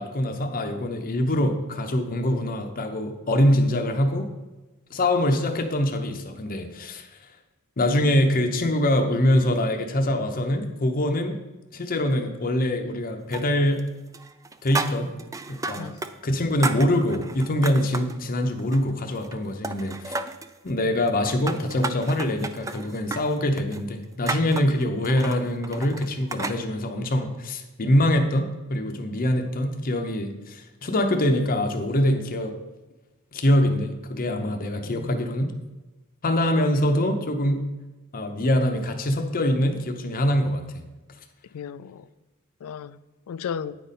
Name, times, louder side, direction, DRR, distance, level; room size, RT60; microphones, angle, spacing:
voice 1, 0.0-4.3 4.9-7.1 7.8-11.4 11.7-13.9 14.6-15.2 15.5-20.1 20.6-32.6 33.3-35.5 36.2-37.7 38.1-40.8, left 1 dB, 40° left, 5 dB, 0.7 m, -24 dB
sound 1, 13.3-13.9 14.1-16.1 16.4-18.2 18.6-19.4 19.6-20.5 21.1-26.6, right 3 dB, 15° right, 0.3 m, -33 dB
voice 2, 34.8-35.4 41.5-42.1 42.6-43.0 43.3-43.8, left 7 dB, 70° left, 16 dB, 0.3 m, -35 dB
9.1 x 4.1 x 5.1 m, 1.1 s
head